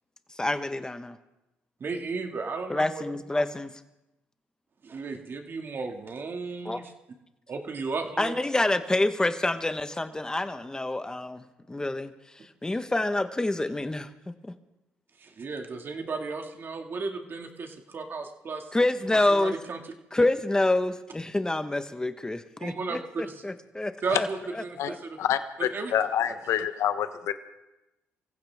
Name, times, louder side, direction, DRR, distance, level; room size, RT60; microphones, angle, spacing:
voice 1, 0.3-1.2 2.7-3.7 6.6-6.8 8.2-12.1 12.4-14.5 18.7-19.6 20.1-24.3 24.5-25.0, left 2 dB, 15° left, 10 dB, 1.3 m, -27 dB
voice 2, 1.8-3.0 4.8-6.8 7.5-8.4 15.2-18.7 19.3-19.8 22.6-23.4 24.0-25.2 25.7-25.9, right 4 dB, 45° right, 3 dB, 2.2 m, -34 dB
voice 3, 25.2-27.3, left 10 dB, 75° left, 10 dB, 1.1 m, -27 dB
24.5 x 15.5 x 3.6 m, 0.97 s
cardioid pair, 80°, 5 cm